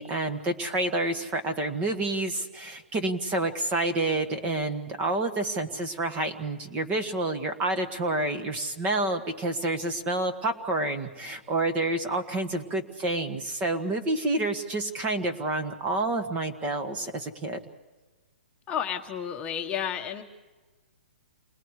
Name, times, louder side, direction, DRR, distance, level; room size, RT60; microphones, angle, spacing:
voice 1, 0.0-17.6, right 2 dB, 20° right, 7 dB, 1.7 m, -29 dB
voice 2, 18.7-20.2, left 9 dB, 20° left, 3 dB, 1.3 m, -31 dB
28.5 x 21.0 x 4.9 m, 1.3 s
hypercardioid pair, 145°, 6 cm